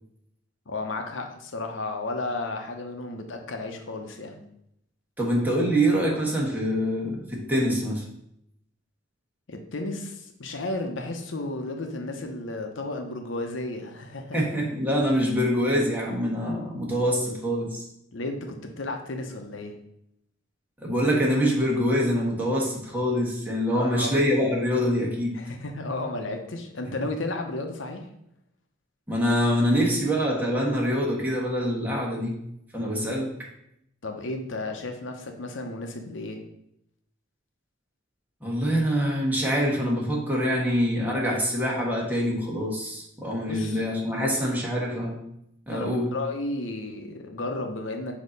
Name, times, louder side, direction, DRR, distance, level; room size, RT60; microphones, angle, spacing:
voice 1, 0.7-4.4 9.5-14.4 18.1-19.8 23.7-24.1 25.3-28.1 34.0-36.4 43.5-43.8 44.2-44.4 45.7-48.2, left 2 dB, 80° left, 4 dB, 0.8 m, -33 dB
voice 2, 5.2-8.0 14.3-17.8 20.8-25.4 29.1-32.4 32.7-33.3 38.4-45.2 45.7-46.1, equal, 10° right, -3 dB, 1.3 m, -25 dB
6.3 x 2.9 x 5.2 m, 0.77 s
head